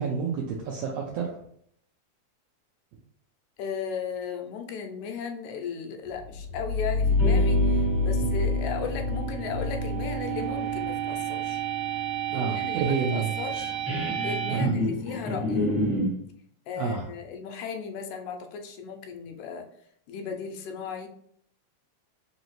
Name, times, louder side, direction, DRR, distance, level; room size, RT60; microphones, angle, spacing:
voice 1, 0.0-1.4 12.3-13.3 14.5-14.7 16.8-17.1, right 5 dB, 80° right, 0 dB, 1.4 m, -29 dB
voice 2, 3.6-11.6 12.3-13.7 14.2-15.7 16.7-19.7 20.1-21.1, left 6 dB, 85° left, 4 dB, 2.0 m, -36 dB
sound 1, 6.2-10.8, left 3 dB, 65° right, 1.6 m, -26 dB
sound 2, 7.0-16.1, right 3 dB, 25° right, 0.5 m, -30 dB
4.8 x 2.7 x 3.0 m, 0.66 s
omnidirectional pair, 3.4 m